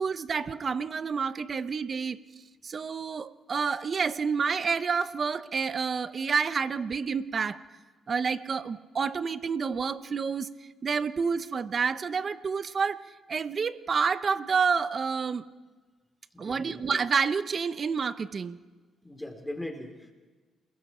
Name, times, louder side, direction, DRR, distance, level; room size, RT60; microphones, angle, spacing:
voice 1, 0.0-2.2 2.6-7.6 8.1-10.5 10.8-13.0 13.3-15.4 16.4-18.6, right 5 dB, 45° right, 13 dB, 0.9 m, -29 dB
voice 2, 16.3-16.8 19.0-20.1, left 1 dB, 5° left, 4 dB, 3.6 m, -39 dB
28.5 x 21.0 x 4.5 m, 1.3 s
cardioid pair, 90°, 0 cm